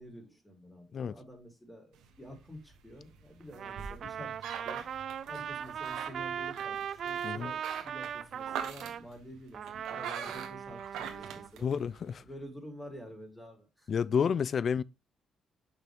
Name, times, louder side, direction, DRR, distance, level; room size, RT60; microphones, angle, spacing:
voice 1, 0.0-4.3 4.6-4.8 5.3-11.7 12.2-13.9, equal, 10° left, 3.5 m, -49 dB
sound 1, 1.9-12.2, right 8 dB, 90° right, 1.3 m, -44 dB
Trumpet, 3.5-9.0 9.5-11.5, right 8 dB, 60° right, 0.4 m, -39 dB
voice 2, 11.6-12.2 13.9-14.8, left 7 dB, 50° left, 0.4 m, -30 dB
6.8 x 5.7 x 3.6 m
cardioid pair, 90°, 0 cm